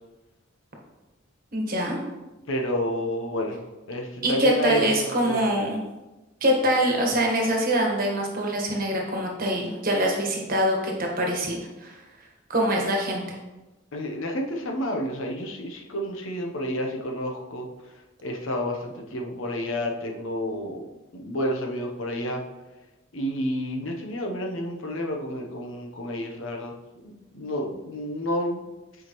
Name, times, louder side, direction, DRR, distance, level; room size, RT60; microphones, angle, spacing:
voice 1, 1.5-2.0 4.2-5.8 6.4-12.0 12.5-13.4, right 1 dB, 45° right, 0 dB, 1.4 m, -24 dB
voice 2, 2.5-3.6 3.9-4.9 5.2-5.5 13.9-17.7 18.2-20.8 21.1-22.4 23.1-26.7 27.0-28.6, equal, 70° left, 1 dB, 0.9 m, -30 dB
8.7 x 5.0 x 3.1 m, 1.1 s
head